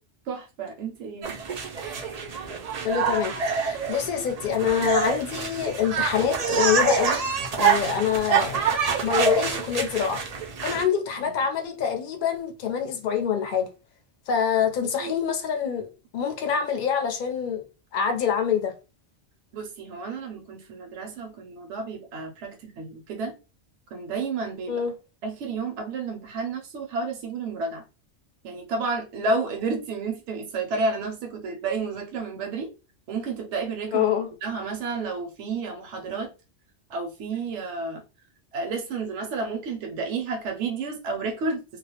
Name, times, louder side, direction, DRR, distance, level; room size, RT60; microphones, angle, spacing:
voice 1, 0.3-1.4 11.2-11.3 14.6-14.7 15.0-15.1 19.5-23.3 23.9-24.8 25.2-27.8 28.4-32.7 33.1-34.1 34.4-36.3 36.9-38.0 38.5-41.6, right 4 dB, 80° right, 0.9 m, -31 dB
sound 1, 1.2-10.8, right 6 dB, 65° right, 0.4 m, -26 dB
voice 2, 2.8-7.2 7.6-8.6 9.0-10.2 10.6-13.7 14.3-17.6 17.9-18.7 24.7-24.9 33.9-34.3, left 8 dB, 55° left, 0.6 m, -25 dB
2.3 x 2.0 x 2.8 m
omnidirectional pair, 1.2 m